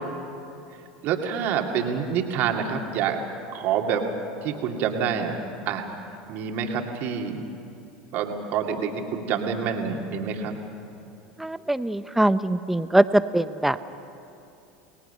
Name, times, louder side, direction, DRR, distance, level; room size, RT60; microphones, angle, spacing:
voice 1, 1.0-3.2 3.5-4.0 4.4-5.4 5.7-5.9 6.3-7.4 8.1-10.6, right 7 dB, 55° right, 3 dB, 2.5 m, -27 dB
voice 2, 11.4-13.8, right 1 dB, 5° right, 13 dB, 0.8 m, -22 dB
29.0 x 20.0 x 5.7 m, 2.8 s
hypercardioid pair, 80°, 4 cm